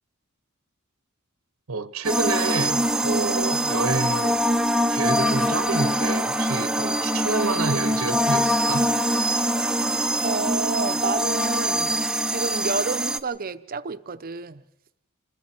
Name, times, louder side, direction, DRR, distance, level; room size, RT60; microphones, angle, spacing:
voice 1, 1.7-4.4 4.9-8.9, right 4 dB, 85° right, 0.9 m, -28 dB
sound 1, 2.0-13.2, equal, 5° right, 0.7 m, -23 dB
sound 2, 6.0-6.1 7.2-7.3 8.0-10.4 11.2-11.5, left 3 dB, 80° left, 3.0 m, -44 dB
voice 2, 10.2-12.0 12.3-14.6, right 4 dB, 45° right, 0.7 m, -30 dB
28.5 x 21.5 x 4.4 m
head